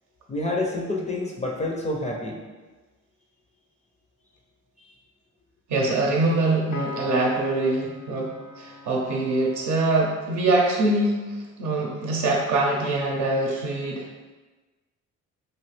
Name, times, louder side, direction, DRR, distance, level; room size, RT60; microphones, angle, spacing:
voice 1, 0.3-2.4, left 2 dB, 25° left, -2 dB, 0.4 m, -28 dB
voice 2, 5.7-14.1, right 2 dB, 75° right, -2 dB, 0.7 m, -24 dB
Piano, 6.7-10.3, left 4 dB, 75° left, 0.5 m, -39 dB
3.0 x 2.5 x 3.1 m, 1.3 s
cardioid pair, 90°, 30 cm